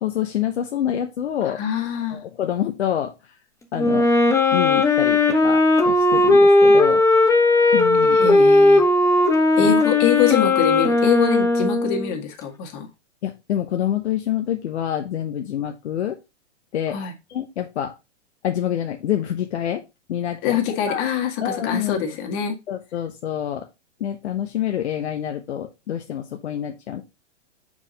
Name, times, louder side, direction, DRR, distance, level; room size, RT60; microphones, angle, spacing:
voice 1, 0.0-1.6 2.1-3.1 3.7-4.1 4.5-7.0 7.7-8.2 9.6-9.7 13.2-16.2 16.7-17.0 17.3-17.9 18.4-19.8 20.1-20.6 20.8-21.1 21.4-22.2 22.7-23.7 24.0-27.0, left 10 dB, 65° left, 1.0 m, -27 dB
voice 2, 1.4-2.2 8.1-8.8 9.6-12.9 16.9-17.1 20.4-22.5, left 8 dB, 45° left, 1.9 m, -24 dB
Wind instrument woodwind instrument, 3.8-12.1, left 2 dB, 10° left, 1.0 m, -17 dB
5.5 x 4.9 x 4.0 m
hypercardioid pair, 120°, 35 cm